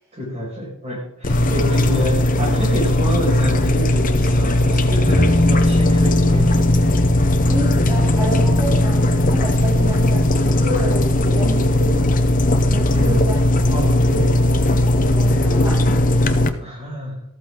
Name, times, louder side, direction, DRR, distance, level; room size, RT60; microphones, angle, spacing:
voice 1, 0.1-6.8 12.9-13.3 13.7-14.5 16.6-17.2, equal, 30° right, -2 dB, 5.8 m, -28 dB
sound 1, 1.2-16.5, left 1 dB, 40° left, 0.9 m, -17 dB
sound 2, 5.1-14.2 14.5-14.6, left 1 dB, 20° left, 1.9 m, -24 dB
voice 2, 7.5-12.2 12.7-13.4 13.7-14.6 15.0-15.9, right 1 dB, 15° right, -9 dB, 4.1 m, -29 dB
14.0 x 13.0 x 3.9 m, 0.77 s
head